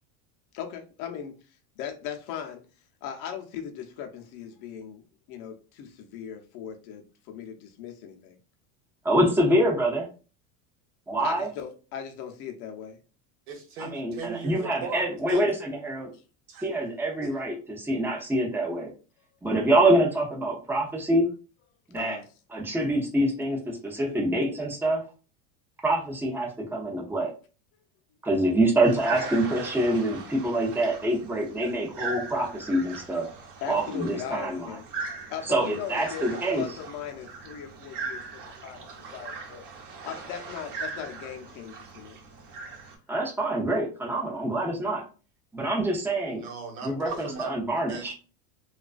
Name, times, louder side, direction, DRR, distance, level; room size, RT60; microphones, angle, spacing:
voice 1, 0.5-1.3 1.8-2.6 3.0-8.4 11.2-13.0 16.1-16.2 21.9-22.3 33.6-34.8 35.3-36.3 36.5-39.6 40.0-42.2, left 8 dB, 60° left, 0.7 m, -38 dB
voice 2, 9.0-10.1 11.1-11.5 13.8-15.5 15.8-16.1 16.6-18.9 19.4-21.3 21.9-22.2 22.5-25.0 25.8-27.3 28.2-33.3 33.7-34.8 35.5-36.6 43.1-45.0 45.5-46.4 46.8-48.1, right 1 dB, 5° right, 0.6 m, -25 dB
voice 3, 13.5-15.5 16.5-16.7 17.2-17.3 46.4-48.1, right 4 dB, 90° right, 0.9 m, -37 dB
sound 1, 28.8-43.0, right 4 dB, 45° right, 0.9 m, -39 dB
2.4 x 2.3 x 2.3 m
supercardioid pair, 110°, 43 cm